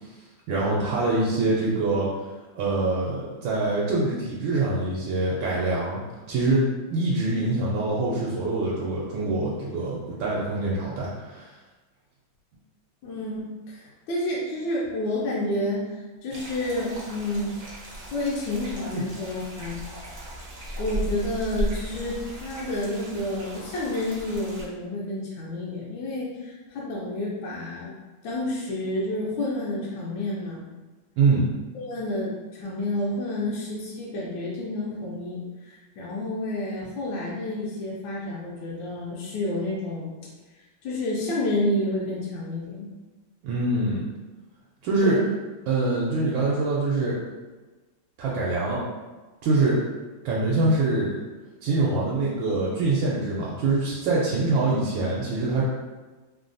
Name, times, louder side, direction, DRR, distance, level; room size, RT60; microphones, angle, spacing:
voice 1, 0.5-2.1 2.5-6.0 6.3-11.5 18.9-19.0 31.2-31.5 43.4-44.0 44.8-45.2 45.7-47.2 48.2-48.8 49.4-49.8 50.2-51.2 51.6-55.6, right 2 dB, 80° right, -6 dB, 1.3 m, -24 dB
voice 2, 13.0-17.5 18.1-19.8 20.8-27.9 28.2-30.6 31.7-40.1 40.8-42.9 45.0-45.3, left 1 dB, 75° left, -5 dB, 1.3 m, -30 dB
sound 1, 16.3-24.6, right 1 dB, 60° right, 0.8 m, -36 dB
3.4 x 2.3 x 2.5 m, 1.2 s
omnidirectional pair, 2.2 m